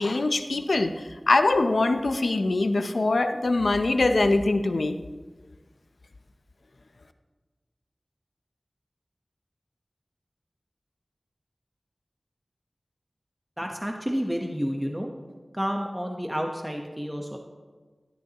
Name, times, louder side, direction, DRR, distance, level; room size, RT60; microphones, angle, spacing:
voice 1, 0.0-5.0, left 2 dB, 85° left, 9 dB, 0.6 m, -23 dB
voice 2, 13.6-15.1 15.5-17.4, equal, 10° right, 2 dB, 1.1 m, -30 dB
13.0 x 11.5 x 3.0 m, 1.4 s
wide cardioid pair, 45°, 0 cm